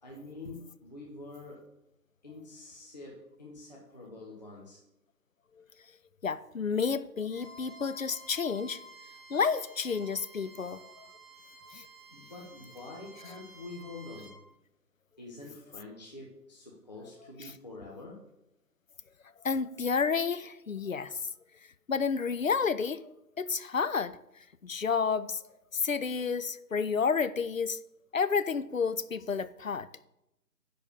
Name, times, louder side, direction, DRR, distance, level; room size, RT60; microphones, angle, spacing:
voice 1, 0.0-1.6 2.2-4.8 12.1-14.4 15.2-18.2, left 2 dB, 25° left, 0.9 m, -46 dB
voice 2, 6.2-8.8 9.3-11.1 11.7-11.8 19.4-21.1 21.9-24.2 24.6-25.4 25.7-27.8 28.1-29.9, left 5 dB, 55° left, 0.5 m, -30 dB
Bowed string instrument, 7.3-14.3, right 2 dB, 15° right, 2.0 m, -52 dB
10.0 x 4.2 x 6.6 m
figure-of-eight pair, 160°, 50 cm